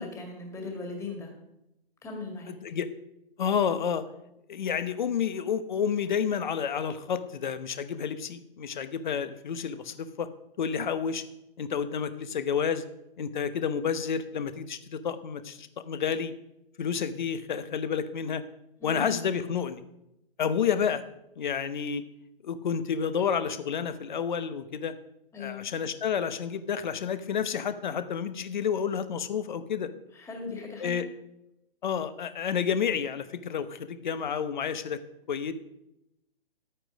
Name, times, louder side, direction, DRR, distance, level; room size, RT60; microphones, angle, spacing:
voice 1, 0.0-1.3 2.0-2.6 18.8-19.1 25.3-25.6 30.1-31.0, left 3 dB, 10° left, 1 dB, 2.1 m, -38 dB
voice 2, 2.5-2.9 3.4-4.0 4.5-10.3 10.6-11.2 11.6-12.8 13.2-16.3 16.8-18.4 18.8-19.8 20.4-21.0 21.4-22.0 22.4-24.9 25.4-29.9 30.8-31.1 31.8-35.0 35.3-35.5, left 7 dB, 50° left, 12 dB, 1.0 m, -30 dB
12.0 x 8.9 x 5.0 m, 0.85 s
figure-of-eight pair, 125°, 30 cm